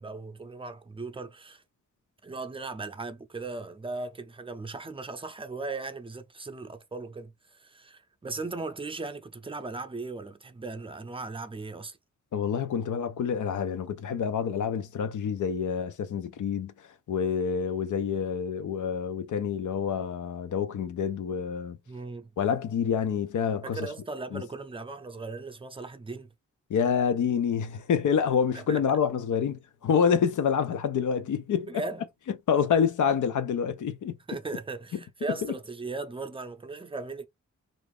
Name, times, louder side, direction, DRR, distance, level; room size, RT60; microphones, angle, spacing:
voice 1, 0.0-1.6 2.2-12.0 21.9-22.3 23.6-26.3 28.5-28.8 31.7-32.0 34.3-37.3, right 3 dB, 20° right, 0.5 m, -38 dB
voice 2, 12.3-16.7 17.1-21.8 22.4-23.9 24.3-24.4 26.7-31.8 32.5-34.2, left 7 dB, 80° left, 0.5 m, -27 dB
2.5 x 2.4 x 3.4 m
cardioid pair, 80°, 30 cm